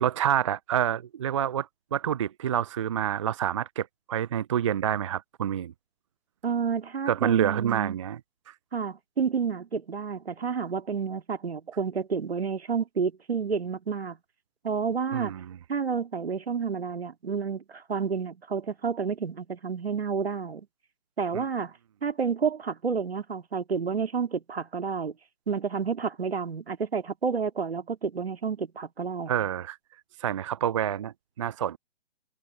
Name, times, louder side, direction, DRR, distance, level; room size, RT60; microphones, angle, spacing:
voice 1, 0.0-5.7 7.1-8.2 8.5-8.6 15.1-15.5 21.3-21.4 29.3-29.8 30.2-31.8, right 10 dB, 30° right, 0.4 m, -28 dB
voice 2, 6.4-8.0 8.7-14.2 14.6-15.3 15.7-20.7 21.2-21.7 22.0-25.1 25.5-29.3, right 6 dB, 70° right, 2.2 m, -30 dB
figure-of-eight pair, 125°, 32 cm